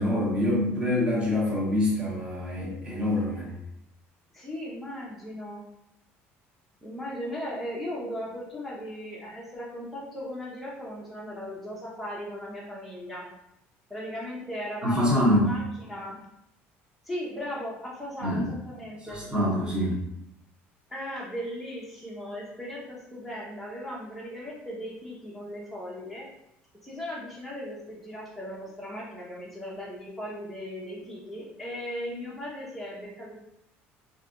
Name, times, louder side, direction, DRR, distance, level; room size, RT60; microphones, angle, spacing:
voice 1, 0.0-3.5 14.8-15.5 18.2-18.5 19.0-19.9, left 1 dB, 20° right, -7 dB, 1.3 m, -25 dB
voice 2, 4.3-5.7 6.8-13.3 13.9-16.2 17.0-19.2 20.9-26.3 26.8-33.3, equal, ahead, -6 dB, 0.7 m, -37 dB
3.2 x 2.7 x 2.5 m, 0.81 s
cardioid pair, 135°, 5 cm